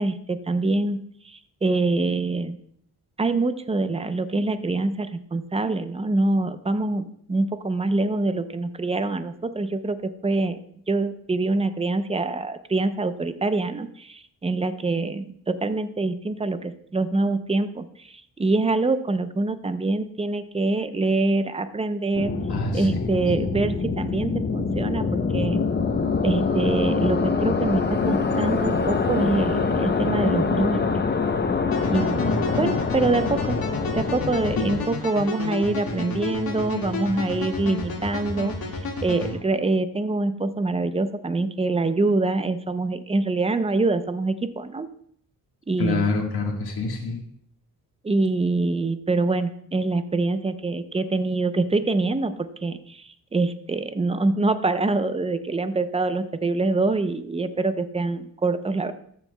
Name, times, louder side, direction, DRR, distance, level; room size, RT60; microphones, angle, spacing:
voice 1, 0.0-2.6 3.2-10.6 10.9-22.3 22.7-25.6 26.2-31.0 31.9-33.6 33.9-38.5 39.0-44.9 45.7-46.2 48.0-58.9, right 3 dB, 15° right, 11 dB, 0.6 m, -25 dB
sound 1, 22.1-34.9, left 4 dB, 30° left, 0.7 m, -25 dB
voice 2, 22.5-22.9 32.2-32.8 34.6-34.7 45.8-47.2, left 3 dB, 85° left, 1 dB, 1.7 m, -27 dB
sound 2, 31.7-39.3, left 3 dB, 70° left, 2.0 m, -31 dB
13.5 x 7.3 x 2.3 m, 0.65 s
cardioid pair, 90°, 37 cm